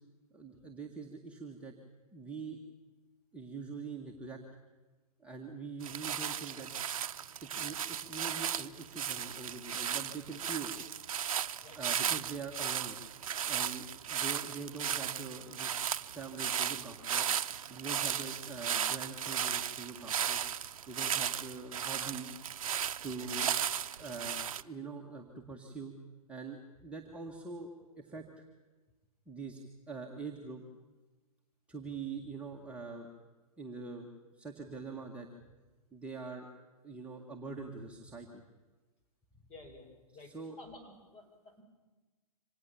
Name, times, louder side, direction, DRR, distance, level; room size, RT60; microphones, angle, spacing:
voice 1, 0.3-1.7 2.1-2.6 3.3-4.4 5.2-6.7 7.4-10.8 11.7-13.0 13.5-15.8 16.1-17.3 17.7-20.4 20.9-22.3 23.0-23.5 24.0-25.9 26.3-27.7 28.0-28.4 29.3-29.6 29.9-30.6 31.7-33.1 33.6-34.1 34.4-35.3 35.9-36.5 36.8-38.4 40.1-40.6, right 4 dB, 5° right, -2 dB, 1.9 m, -44 dB
sound 1, 5.8-24.6, right 9 dB, 65° right, 0.7 m, -35 dB
voice 2, 39.5-41.6, left 2 dB, 30° left, 3 dB, 5.4 m, -53 dB
25.5 x 18.5 x 7.2 m, 1.2 s
figure-of-eight pair, 115°, 19 cm